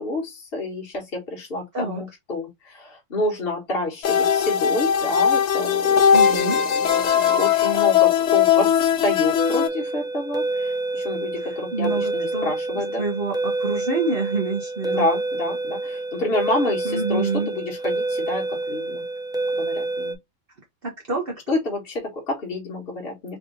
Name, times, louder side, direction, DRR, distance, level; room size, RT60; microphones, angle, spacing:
voice 1, 0.0-13.0 14.8-19.0 19.5-20.1 21.5-23.4, left 2 dB, 45° left, 1.5 m, -29 dB
sound 1, 4.0-9.7, left 8 dB, 65° left, 0.9 m, -19 dB
voice 2, 6.1-6.6 11.4-15.1 16.8-17.5 20.8-21.6, right 3 dB, 50° right, 1.1 m, -27 dB
sound 2, 9.4-20.1, right 2 dB, 5° right, 0.3 m, -28 dB
3.6 x 2.6 x 3.8 m
omnidirectional pair, 1.4 m